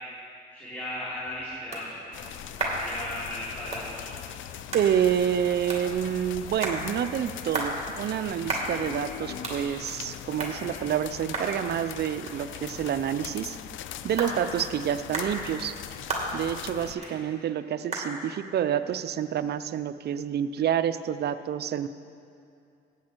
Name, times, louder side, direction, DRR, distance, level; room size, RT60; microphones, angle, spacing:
voice 1, 0.5-2.2 2.5-4.2 16.9-17.1, left 1 dB, 10° left, -10 dB, 3.0 m, -37 dB
sound 1, 0.8-20.1, right 2 dB, 35° right, 2.3 m, -37 dB
sound 2, 2.1-16.9, left 10 dB, 75° left, 0.5 m, -40 dB
voice 2, 4.7-13.6 14.0-15.7 16.3-21.9, right 9 dB, 55° right, 13 dB, 0.5 m, -28 dB
15.0 x 8.8 x 4.5 m, 2.5 s
cardioid pair, 90°, 20 cm